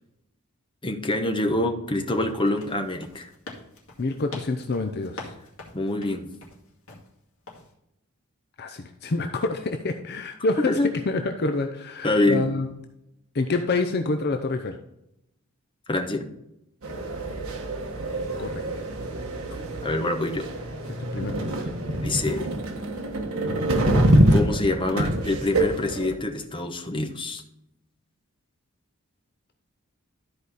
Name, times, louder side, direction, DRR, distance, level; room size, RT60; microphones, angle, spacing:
voice 1, 0.8-3.3 5.7-6.3 10.7-10.9 12.0-12.5 15.9-16.2 19.8-20.5 22.0-22.5 24.3-27.4, left 2 dB, 25° left, 4 dB, 1.0 m, -25 dB
sound 1, 2.3-7.1 7.5-7.7, left 2 dB, 65° left, 2.2 m, -44 dB
voice 2, 4.0-5.3 8.6-10.8 11.1-12.7 13.3-14.8 18.4-18.6 21.1-21.7, left 3 dB, 50° left, 6 dB, 0.6 m, -27 dB
sound 2, 16.8-26.2, right 1 dB, 65° right, 1.5 m, -25 dB
12.5 x 4.9 x 4.1 m, 0.82 s
head